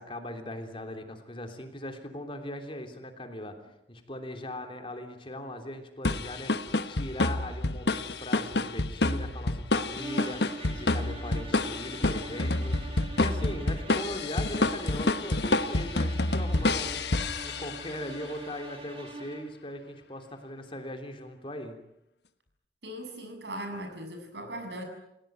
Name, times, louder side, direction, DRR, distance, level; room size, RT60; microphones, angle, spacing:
voice 1, 0.0-3.6 3.9-12.8 13.2-17.1 17.4-21.8, left 1 dB, 30° left, 6 dB, 3.3 m, -39 dB
sound 1, 6.0-18.0, left 2 dB, 70° left, 1.3 m, -28 dB
sound 2, 9.9-19.6, right 2 dB, 30° right, 2.5 m, -43 dB
voice 2, 22.8-24.8, right 1 dB, 75° right, 5 dB, 7.2 m, -39 dB
29.0 x 17.0 x 9.3 m, 0.83 s
head